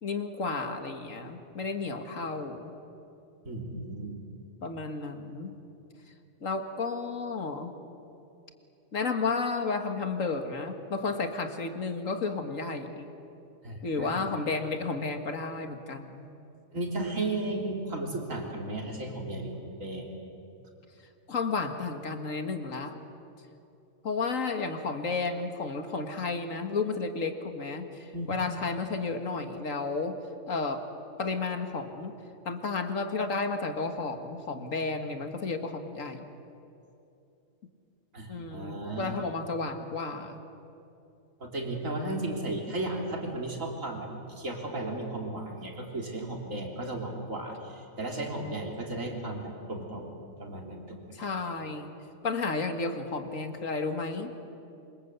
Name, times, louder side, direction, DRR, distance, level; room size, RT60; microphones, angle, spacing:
voice 1, 0.0-2.7 4.6-5.5 6.4-7.7 8.9-13.1 13.8-16.3 21.3-22.9 24.0-30.2 30.5-30.8 31.2-32.1 32.5-36.3 38.3-40.4 51.1-51.9 52.2-54.3, left 4 dB, 90° left, 6 dB, 2.2 m, -32 dB
voice 2, 3.5-4.2 13.6-14.2 16.7-20.1 28.1-28.3 38.1-39.2 41.4-44.1 44.4-50.1 50.4-51.1, right 2 dB, 90° right, 1 dB, 3.9 m, -35 dB
27.5 x 25.5 x 8.2 m, 2.8 s
omnidirectional pair, 1.3 m